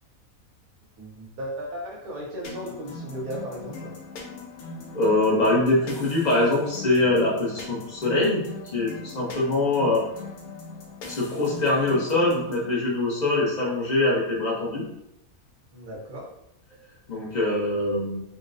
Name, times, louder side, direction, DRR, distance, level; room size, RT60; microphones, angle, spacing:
voice 1, 1.0-3.9 15.7-16.3, equal, 85° right, -2 dB, 1.4 m, -35 dB
sound 1, 2.4-12.7, left 3 dB, 75° left, 1.1 m, -40 dB
voice 2, 4.9-8.4 8.7-10.0 11.0-14.8 17.1-18.2, left 2 dB, 35° left, -4 dB, 0.8 m, -23 dB
3.8 x 2.1 x 2.5 m, 0.82 s
omnidirectional pair, 1.5 m